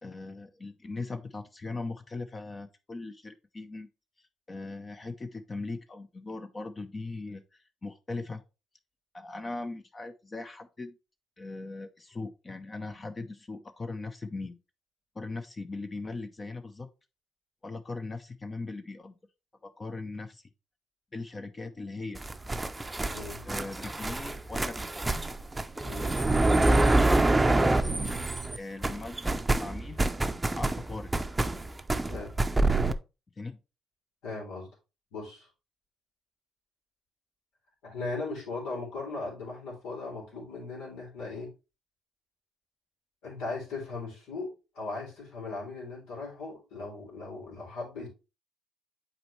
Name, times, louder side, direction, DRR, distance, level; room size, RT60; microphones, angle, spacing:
voice 1, 0.0-3.9 4.5-8.4 9.1-10.9 11.4-14.6 15.1-16.9 17.6-19.2 19.6-20.5 21.1-22.3 23.4-25.1 26.3-30.0 30.6-31.1 33.4-33.6, left 3 dB, 30° left, 8 dB, 0.6 m, -39 dB
sound 1, 22.2-28.6 28.8-32.9, right 2 dB, 15° right, 0.6 m, -26 dB
voice 2, 23.1-23.4 25.8-26.2 32.1-32.3 34.2-34.7 35.1-35.5 37.8-41.5 43.2-44.5 44.7-48.1, left 3 dB, 90° left, -3 dB, 3.3 m, -38 dB
7.8 x 4.3 x 3.1 m, 0.29 s
supercardioid pair, 75°, 0 cm